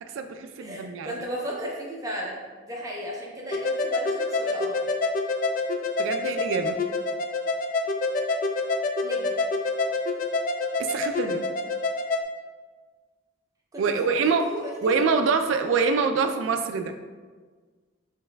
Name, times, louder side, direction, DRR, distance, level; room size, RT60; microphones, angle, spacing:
voice 1, 0.0-1.1 6.0-6.8 10.8-11.4 13.8-14.5 14.8-16.9, right 5 dB, 85° right, 6 dB, 0.3 m, -25 dB
voice 2, 0.6-2.4 2.7-4.8 9.0-9.4 13.7-15.0, equal, 15° right, -3 dB, 0.6 m, -35 dB
sound 1, 3.5-12.2, left 3 dB, 45° left, 0.3 m, -27 dB
6.4 x 3.3 x 2.2 m, 1.4 s
head